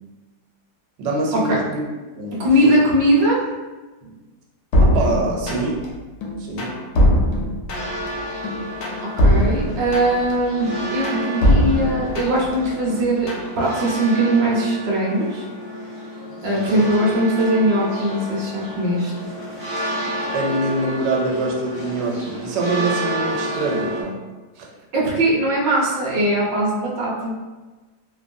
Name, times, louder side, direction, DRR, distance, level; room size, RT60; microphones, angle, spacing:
voice 1, 1.0-1.8 2.2-2.8 4.0-4.1 4.9-5.8 6.4-6.7 16.7-16.8 20.3-24.2 24.6-24.7, right 2 dB, 85° right, 0 dB, 1.2 m, -24 dB
voice 2, 2.4-3.4 9.0-13.3 13.6-15.5 16.4-19.1 24.9-27.3, right 1 dB, 60° right, -4 dB, 0.6 m, -20 dB
sound 1, 4.7-5.9 6.2-8.1 8.4-10.3 10.7-12.5 12.9-13.5, equal, 85° left, 1.2 m, -20 dB
sound 2, 7.7-24.0, equal, 30° left, 0.7 m, -30 dB
3.1 x 2.2 x 2.5 m, 1.2 s
omnidirectional pair, 1.8 m